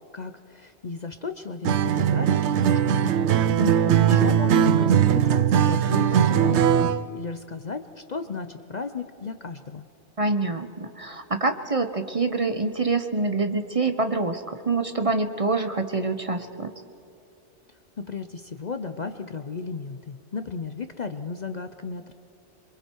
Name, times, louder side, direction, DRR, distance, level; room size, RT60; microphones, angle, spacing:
voice 1, 0.1-3.3 3.7-9.8 18.0-22.1, left 4 dB, 45° left, 9 dB, 0.7 m, -35 dB
Acoustic guitar, 1.6-7.0, right 9 dB, 75° right, 0.9 m, -20 dB
voice 2, 3.6-4.1 10.2-16.7, right 3 dB, 35° right, 8 dB, 0.9 m, -26 dB
27.5 x 23.5 x 4.6 m, 2.7 s
omnidirectional pair, 1.2 m